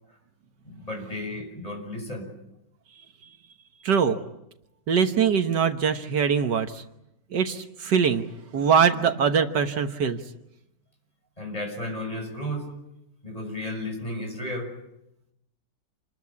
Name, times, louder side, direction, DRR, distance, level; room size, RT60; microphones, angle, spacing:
voice 1, 0.6-2.3 11.4-12.7 13.2-14.7, left 1 dB, 20° left, 3 dB, 6.6 m, -33 dB
voice 2, 3.8-4.2 4.9-6.8 7.3-8.3 8.5-10.2, right 7 dB, 75° right, 7 dB, 1.8 m, -22 dB
29.0 x 21.0 x 8.5 m, 0.87 s
omnidirectional pair, 1.9 m